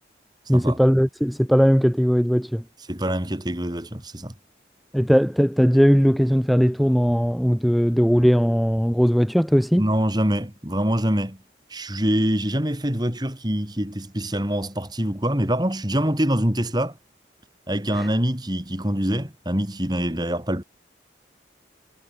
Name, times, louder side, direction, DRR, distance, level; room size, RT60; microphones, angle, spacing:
voice 1, 0.5-2.6 4.9-9.8 17.9-18.1, equal, ahead, 0.6 m, -19 dB
voice 2, 2.9-4.3 9.8-11.4 11.7-17.0 17.7-20.6, equal, 25° right, 3.2 m, -24 dB
head